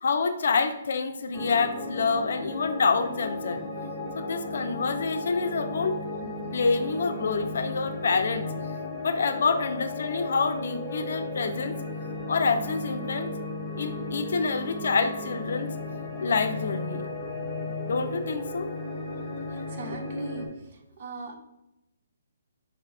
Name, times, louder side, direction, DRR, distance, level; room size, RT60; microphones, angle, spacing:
voice 1, 0.0-3.7 4.1-8.5 9.0-11.7 12.3-13.3 13.8-15.7 16.2-17.0 17.9-18.7 19.5-19.7, left 4 dB, 65° left, 8 dB, 0.4 m, -27 dB
sound 1, 1.3-20.5, left 2 dB, 25° left, 1.2 m, -35 dB
voice 2, 19.7-20.4 21.0-21.4, right 2 dB, 50° right, 4 dB, 0.7 m, -37 dB
4.9 x 2.3 x 3.3 m, 0.91 s
figure-of-eight pair, 135°, 0 cm